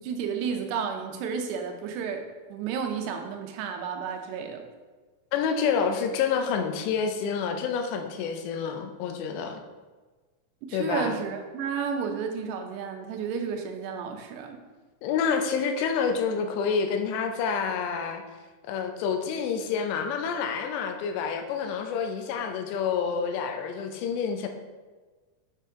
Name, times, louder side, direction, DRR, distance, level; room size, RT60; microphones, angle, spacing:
voice 1, 0.0-2.2 2.5-4.6 10.7-14.6, right 6 dB, 80° right, 4 dB, 2.8 m, -32 dB
voice 2, 5.3-9.6 10.7-11.1 15.0-18.2 18.7-24.5, left 6 dB, 85° left, 5 dB, 2.9 m, -28 dB
7.6 x 5.6 x 3.6 m, 1.3 s
omnidirectional pair, 5.0 m